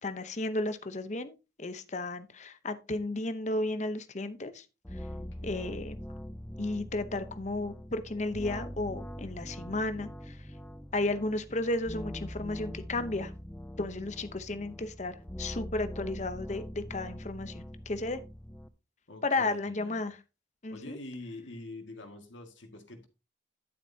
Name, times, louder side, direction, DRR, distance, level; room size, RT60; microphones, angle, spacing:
voice 1, 0.0-4.6 5.4-6.0 6.6-10.4 10.9-13.3 13.8-18.2 19.2-20.2 20.6-21.0, left 2 dB, 40° left, 0.8 m, -33 dB
sound 1, 4.8-18.7, equal, 10° left, 0.5 m, -43 dB
voice 2, 5.1-5.7 19.1-20.0 20.7-23.1, left 2 dB, 80° left, 2.0 m, -46 dB
10.5 x 9.0 x 2.8 m
head